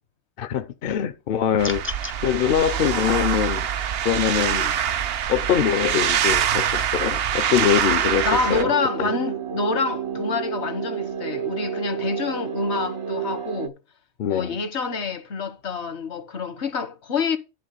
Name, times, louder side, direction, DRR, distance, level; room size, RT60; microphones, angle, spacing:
voice 1, 0.4-1.9 2.2-3.6 4.0-4.7 5.3-8.7 9.0-9.1 14.2-14.6, left 9 dB, 60° left, 0.7 m, -23 dB
sound 1, 1.6-2.2, left 2 dB, 20° left, 0.3 m, -32 dB
sound 2, 1.6-8.6, right 9 dB, 65° right, 0.8 m, -24 dB
voice 2, 2.7-3.3 4.5-4.7 8.2-13.8 14.3-17.4, left 5 dB, 75° left, 1.3 m, -27 dB
sound 3, 8.0-13.7, right 8 dB, 40° right, 0.5 m, -30 dB
10.5 x 3.6 x 6.4 m
omnidirectional pair, 1.1 m